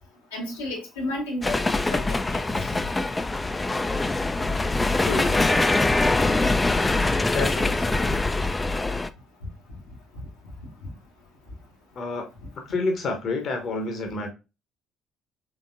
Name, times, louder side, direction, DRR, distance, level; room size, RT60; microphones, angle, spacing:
voice 1, 0.3-1.6 1.9-2.7 8.1-8.2, left 1 dB, 85° left, 1.0 m, -32 dB
sound 1, 1.4-9.1, left 2 dB, 20° left, 0.4 m, -23 dB
voice 2, 5.1-5.5 7.3-8.0 12.0-12.3 12.7-14.3, left 3 dB, 55° left, 0.9 m, -29 dB
4.0 x 3.4 x 2.4 m
hypercardioid pair, 50°, 0 cm